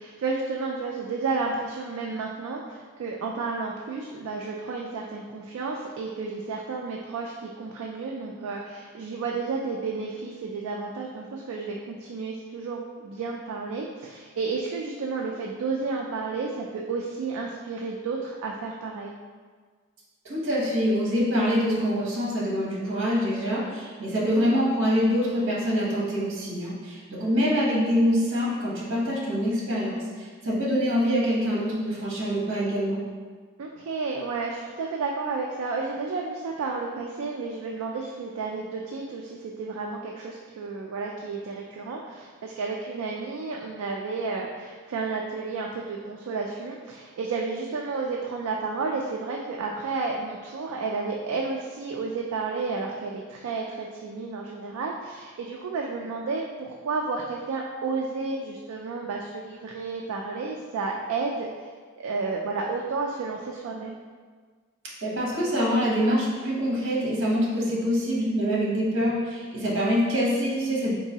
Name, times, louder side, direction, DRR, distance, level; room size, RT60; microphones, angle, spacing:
voice 1, 0.0-19.1 24.2-24.5 33.6-61.7 62.0-64.0, right 4 dB, 85° right, -1 dB, 0.3 m, -32 dB
voice 2, 20.2-33.0 65.0-70.9, equal, 60° right, -5 dB, 1.0 m, -25 dB
3.9 x 2.6 x 2.8 m, 1.6 s
head